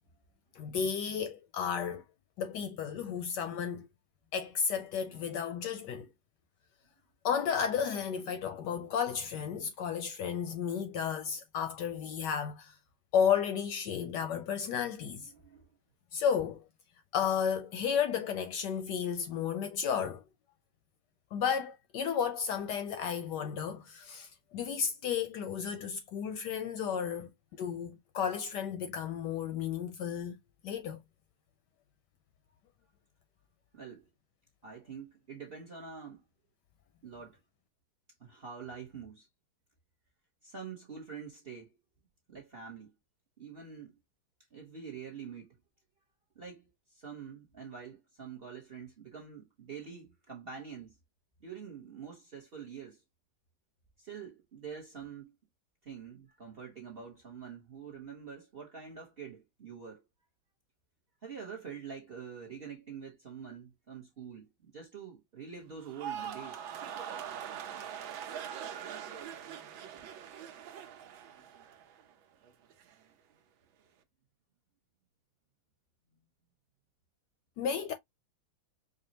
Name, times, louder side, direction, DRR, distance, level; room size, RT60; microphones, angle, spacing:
voice 1, 0.6-2.0 2.4-3.9 4.3-6.1 7.2-12.7 13.1-15.3 16.1-16.6 17.1-20.2 21.3-27.3 27.6-30.4 30.6-31.0 77.6-77.9, left 7 dB, 75° left, 1.0 m, -33 dB
voice 2, 15.3-15.7 33.7-34.1 34.6-36.2 37.0-37.4 38.2-39.3 40.4-41.8 42.3-43.0 43.4-43.9 44.5-45.6 46.4-50.9 51.4-53.0 54.0-55.4 55.8-60.0 61.2-66.6, right 6 dB, 40° right, 0.8 m, -46 dB
sound 1, 65.8-72.1 72.4-72.9, right 9 dB, 80° right, 1.5 m, -42 dB
5.1 x 2.4 x 2.7 m
omnidirectional pair, 2.2 m